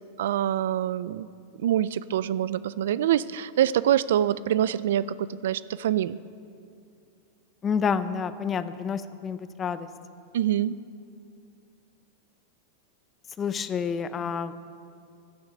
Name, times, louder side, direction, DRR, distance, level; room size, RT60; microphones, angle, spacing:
voice 1, 0.2-1.3 1.6-6.2 10.3-10.8, right 11 dB, 75° right, 18 dB, 0.4 m, -25 dB
voice 2, 7.6-9.9 13.4-14.5, left 6 dB, 20° left, 13 dB, 0.6 m, -29 dB
16.0 x 11.5 x 6.1 m, 2.4 s
supercardioid pair, 140°, 0 cm